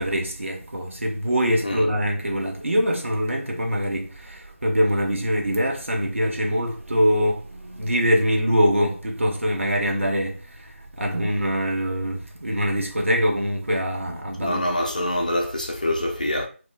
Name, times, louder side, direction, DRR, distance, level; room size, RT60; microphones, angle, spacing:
voice 1, 0.0-14.8, equal, 60° right, 0.8 m, -24 dB
voice 2, 14.4-16.5, left 1 dB, 35° left, 0.4 m, -25 dB
2.3 x 2.0 x 3.1 m
figure-of-eight pair, 170°, 8 cm